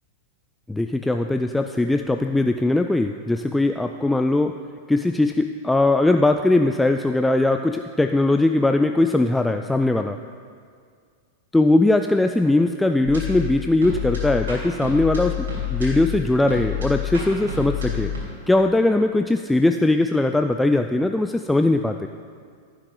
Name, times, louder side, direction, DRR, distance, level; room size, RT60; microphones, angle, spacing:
voice 1, 0.7-4.6 4.9-10.2 11.5-18.1 18.5-22.1, left 2 dB, 5° left, 6 dB, 0.3 m, -20 dB
sound 1, 13.0-18.2, left 8 dB, 90° right, 2.9 m, -28 dB
14.5 x 6.3 x 3.9 m, 2.1 s
hypercardioid pair, 105°, 0 cm